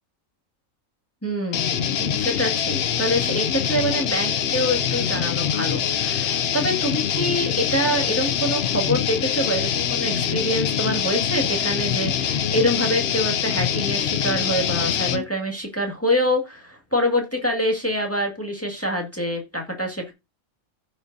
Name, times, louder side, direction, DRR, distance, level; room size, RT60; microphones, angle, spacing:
voice 1, 1.2-20.1, equal, 10° left, 1 dB, 1.8 m, -25 dB
sound 1, 1.5-15.2, left 8 dB, 60° left, 0.7 m, -24 dB
15.0 x 5.1 x 2.7 m, 0.24 s
omnidirectional pair, 1.5 m